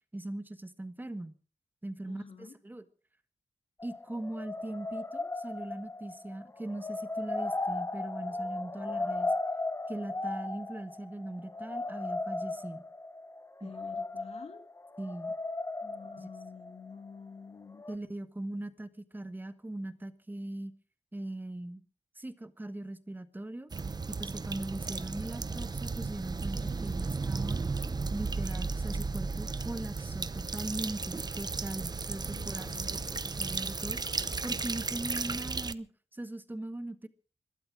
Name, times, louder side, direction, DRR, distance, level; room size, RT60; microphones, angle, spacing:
voice 1, 0.1-1.3 1.8-2.8 3.8-9.3 9.9-12.8 13.6-13.7 15.0-15.3 16.2-16.3 17.9-20.7 21.1-21.8 22.2-23.7 24.1-27.6 28.1-33.0 33.2-34.0 34.4-37.1, right 1 dB, 15° right, 11 dB, 1.6 m, -40 dB
voice 2, 2.1-2.6 13.6-14.6 15.8-17.9 32.3-33.1, left 5 dB, 60° left, 7 dB, 2.5 m, -48 dB
sound 1, 3.8-17.4 17.8-18.0, left 2 dB, 25° left, 1.2 m, -36 dB
sound 2, 23.7-35.7, right 4 dB, 35° right, 0.8 m, -34 dB
22.0 x 12.5 x 4.8 m, 0.38 s
wide cardioid pair, 90°, 12 cm